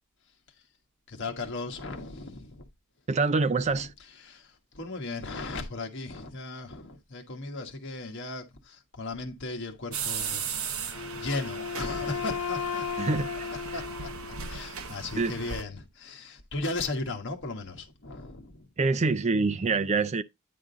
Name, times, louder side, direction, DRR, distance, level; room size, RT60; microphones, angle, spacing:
voice 1, 1.1-2.7 3.7-3.8 4.2-18.7, left 3 dB, 55° left, 1.4 m, -37 dB
voice 2, 3.1-3.9 13.0-13.5 15.1-15.3 18.8-20.2, right 3 dB, 30° right, 0.4 m, -26 dB
sound 1, 9.9-15.6, right 6 dB, 70° right, 1.0 m, -37 dB
Wind instrument woodwind instrument, 10.9-14.9, left 6 dB, 75° left, 0.4 m, -35 dB
9.5 x 3.7 x 3.9 m
head